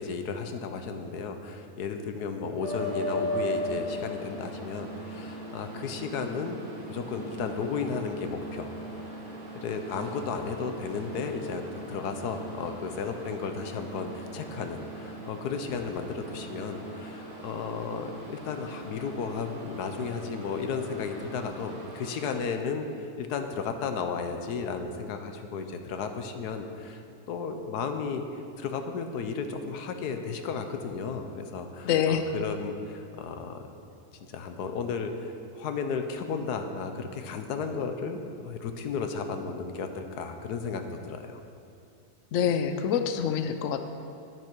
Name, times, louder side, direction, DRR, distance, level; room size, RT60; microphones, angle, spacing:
voice 1, 0.0-6.6 6.9-8.7 9.6-11.6 11.9-27.0 27.3-33.6 34.3-41.4, left 5 dB, 90° left, 6 dB, 1.3 m, -34 dB
sound 1, 2.6-22.4, equal, 30° right, 2.3 m, -39 dB
voice 2, 31.8-32.2 42.3-43.8, left 8 dB, 65° left, 8 dB, 0.9 m, -26 dB
9.8 x 9.7 x 4.6 m, 2.5 s
omnidirectional pair, 1.7 m